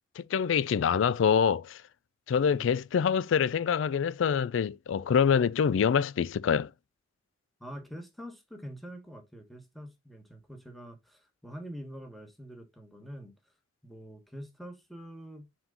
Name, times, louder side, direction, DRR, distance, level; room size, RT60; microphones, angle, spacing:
voice 1, 0.2-1.8 2.3-6.7, left 7 dB, 75° left, 0.3 m, -25 dB
voice 2, 2.5-2.8 7.6-13.3 13.8-15.5, equal, ahead, 1.2 m, -45 dB
6.0 x 4.4 x 3.8 m
head